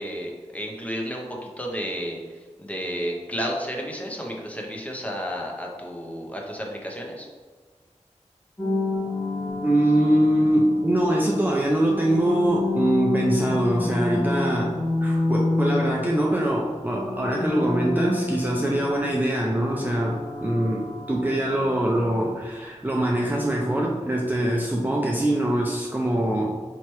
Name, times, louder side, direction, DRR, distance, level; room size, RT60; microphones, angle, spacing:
voice 1, 0.0-2.2 2.6-7.3, equal, 10° left, -1 dB, 0.8 m, -32 dB
sound 1, 8.6-11.0 11.6-16.5 16.8-21.7, left 2 dB, 35° left, 1.3 m, -29 dB
voice 2, 9.6-26.6, right 1 dB, 15° right, -3 dB, 0.5 m, -23 dB
4.6 x 2.8 x 3.0 m, 1.4 s
wide cardioid pair, 50°, 12 cm